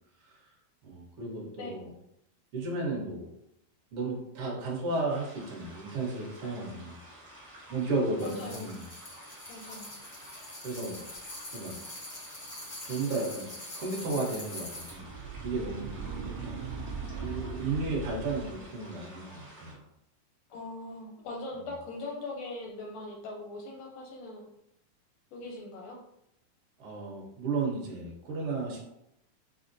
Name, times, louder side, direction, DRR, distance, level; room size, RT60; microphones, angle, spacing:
voice 1, 0.8-1.9 2.5-3.3 3.9-6.9 7.7-8.8 10.6-11.0 11.5-11.7 12.8-13.5 13.7-15.1 15.4-16.5 17.1-19.8 26.8-28.9, right 3 dB, 60° right, -3 dB, 1.6 m, -34 dB
sound 1, 5.1-19.7, right 1 dB, 40° right, 1.0 m, -51 dB
voice 2, 8.2-8.8 9.5-9.9 16.0-16.5 20.5-24.4 25.3-26.0, left 2 dB, 80° left, 0 dB, 1.5 m, -41 dB
sound 2, 8.2-15.0, left 1 dB, 55° left, 0.9 m, -44 dB
sound 3, 14.8-18.8, right 5 dB, 85° right, 1.4 m, -39 dB
5.9 x 2.1 x 2.6 m, 0.80 s
omnidirectional pair, 3.4 m